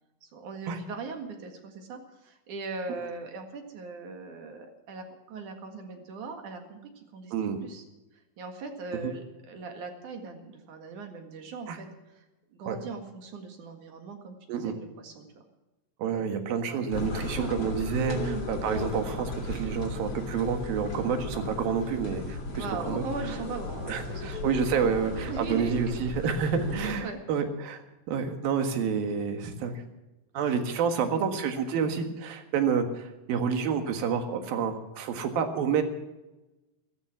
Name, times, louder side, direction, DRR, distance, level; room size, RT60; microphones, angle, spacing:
voice 1, 0.2-7.3 7.6-7.8 8.1-12.2 12.5-15.3 16.7-16.8 17.3-17.5 18.1-18.5 22.5-24.6 25.0-26.3 26.7-27.2 31.8-32.1, right 4 dB, 65° right, 4 dB, 3.2 m, -40 dB
voice 2, 16.0-23.0 23.9-27.8 28.1-29.8 30.4-35.8, right 6 dB, 90° right, 7 dB, 3.5 m, -29 dB
sound 1, 16.9-27.0, left 2 dB, 45° left, 3.9 m, -36 dB
14.5 x 14.5 x 6.0 m, 1.0 s
omnidirectional pair, 4.0 m